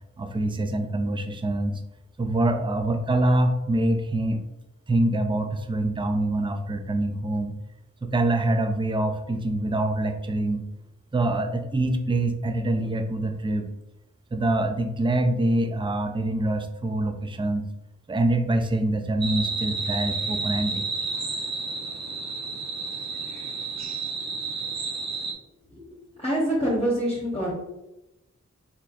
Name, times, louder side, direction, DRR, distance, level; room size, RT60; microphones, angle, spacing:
voice 1, 0.2-1.8 2.2-4.4 4.9-7.5 8.0-10.6 11.1-13.7 14.3-17.7 18.1-20.9, right 1 dB, 15° right, 7 dB, 0.4 m, -25 dB
sound 1, 19.2-25.3, right 4 dB, 60° right, 0.8 m, -31 dB
voice 2, 26.2-27.5, right 1 dB, 20° left, -6 dB, 1.1 m, -25 dB
4.4 x 4.2 x 2.5 m, 0.94 s
wide cardioid pair, 70°, 30 cm